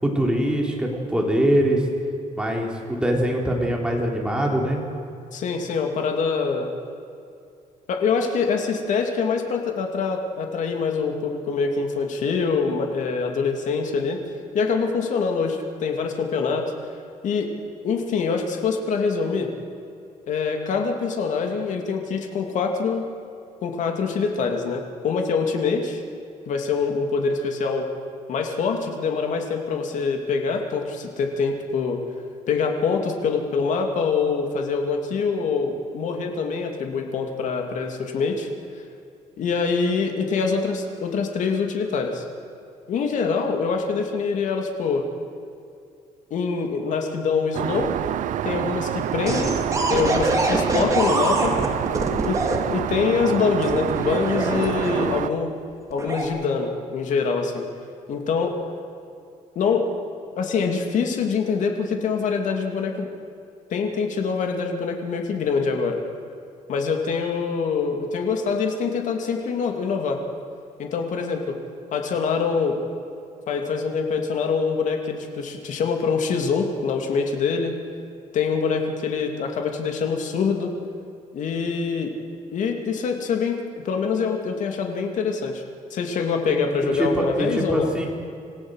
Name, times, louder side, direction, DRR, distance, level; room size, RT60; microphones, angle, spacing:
voice 1, 0.0-1.8 2.4-4.8 86.5-86.6 86.9-88.1, right 1 dB, 5° right, -1 dB, 3.7 m, -23 dB
voice 2, 5.3-6.7 7.9-14.2 14.5-16.7 17.2-17.5 17.8-19.5 20.3-23.1 23.6-26.0 26.5-27.9 28.3-32.0 32.5-38.5 39.4-42.2 42.9-45.0 46.3-47.9 48.4-49.6 49.9-51.6 52.2-52.4 52.7-55.5 55.9-57.7 58.1-58.6 59.5-59.9 60.4-63.1 63.7-66.0 66.7-70.2 70.8-71.6 71.9-72.8 73.5-77.7 78.3-80.7 81.3-82.1 82.5-85.6 85.9-87.9, left 5 dB, 65° left, 3 dB, 2.7 m, -24 dB
Aircraft, 47.5-55.3, right 11 dB, 65° right, 0.7 m, -27 dB
sound 1, 49.3-52.6 53.6-55.3 55.9-56.3, right 2 dB, 25° right, 2.9 m, -24 dB
27.0 x 16.5 x 6.5 m, 2.5 s
cardioid pair, 135°, 14 cm